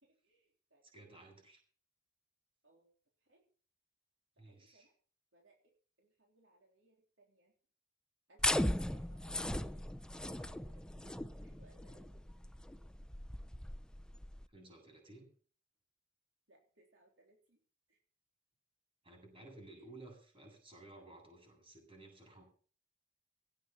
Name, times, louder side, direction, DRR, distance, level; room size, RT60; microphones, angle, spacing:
voice 1, 0.0-0.8 2.6-2.9 3.2-3.5 4.4-4.9 5.3-7.5 8.3-10.0 10.2-12.3 16.5-17.6 17.9-18.0 19.7-19.8, right 1 dB, 65° right, 0 dB, 3.7 m, -68 dB
voice 2, 0.8-1.6 4.4-4.9 14.5-15.3 19.0-22.4, right 2 dB, 30° right, 2 dB, 7.7 m, -56 dB
sound 1, 8.4-14.4, left 1 dB, 5° left, 0.6 m, -38 dB
17.5 x 8.5 x 7.2 m, 0.43 s
head